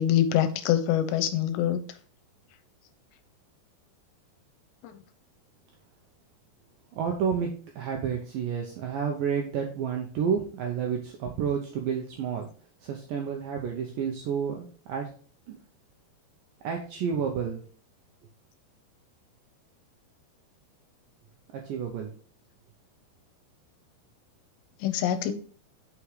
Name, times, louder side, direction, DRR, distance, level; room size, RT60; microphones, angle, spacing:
voice 1, 0.0-1.8 4.8-5.0 24.8-25.3, left 11 dB, 90° left, 10 dB, 2.9 m, -25 dB
voice 2, 6.9-12.5 12.8-15.1 15.5-15.6 16.6-17.6 21.5-22.1, right 7 dB, 85° right, 2 dB, 2.0 m, -30 dB
6.8 x 6.0 x 3.2 m, 0.43 s
omnidirectional pair, 5.0 m